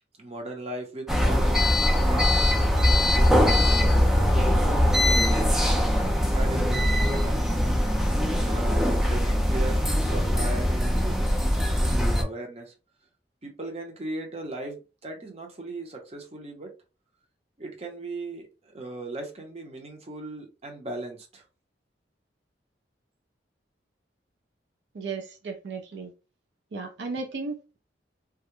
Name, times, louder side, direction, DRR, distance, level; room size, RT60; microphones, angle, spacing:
voice 1, 0.2-1.4 2.0-3.8 4.1-5.7 6.3-7.5 8.5-9.8 10.1-12.7 13.4-16.7 17.6-21.4, right 2 dB, 35° right, 0.7 m, -38 dB
sound 1, 1.1-12.2, left 1 dB, ahead, 0.4 m, -22 dB
voice 2, 24.9-26.1 26.7-27.8, right 4 dB, 70° right, 0.4 m, -35 dB
2.3 x 2.0 x 2.9 m
head